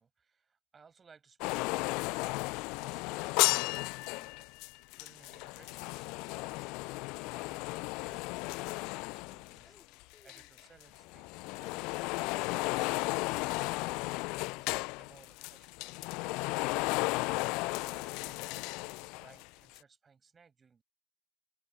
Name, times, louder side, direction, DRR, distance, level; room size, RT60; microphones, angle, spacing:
voice 1, 0.0-4.3 4.6-9.8 10.2-13.5 13.9-17.3 17.9-20.8, right 5 dB, 15° right, 7.3 m, -63 dB
sound 1, 1.4-10.0 10.3-19.5 19.8-19.9, left 26 dB, 40° left, 0.6 m, -34 dB
sound 2, 9.3-10.8 11.0-11.5 11.8-12.0 12.2-14.3 15.4-15.6 15.8-16.3 16.6-16.8 17.0-17.5, left 4 dB, 15° left, 7.0 m, -67 dB
open air
figure-of-eight pair, 90°, 0 cm